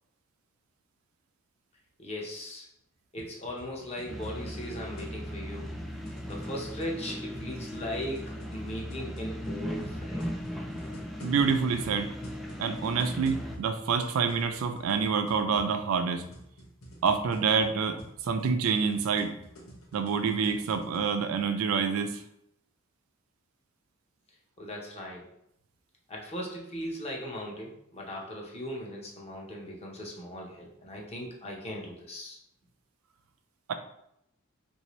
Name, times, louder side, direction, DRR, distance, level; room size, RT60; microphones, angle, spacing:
voice 1, 2.0-2.7 3.1-5.7 6.3-10.3 24.6-25.3 26.1-32.4, equal, 30° left, -2 dB, 0.7 m, -38 dB
sound 1, 3.2-21.0, equal, 80° left, 0.8 m, -49 dB
sound 2, 4.1-13.6, equal, ahead, 0.3 m, -38 dB
voice 2, 11.2-12.1 12.6-16.3 17.0-19.4 19.9-22.2 33.7-33.8, right 5 dB, 75° right, 7 dB, 0.4 m, -27 dB
3.3 x 2.7 x 3.0 m, 0.76 s
head